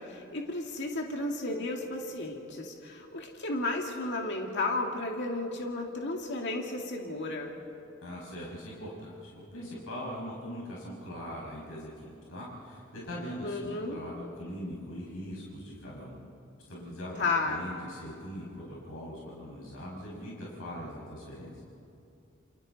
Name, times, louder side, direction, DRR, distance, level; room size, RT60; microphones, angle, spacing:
voice 1, 0.0-7.6 13.4-14.0 17.2-17.6, left 2 dB, 55° left, 1 dB, 2.2 m, -33 dB
voice 2, 8.0-16.2 16.7-21.6, equal, 80° left, -5 dB, 5.6 m, -41 dB
29.5 x 28.0 x 4.1 m, 2.8 s
head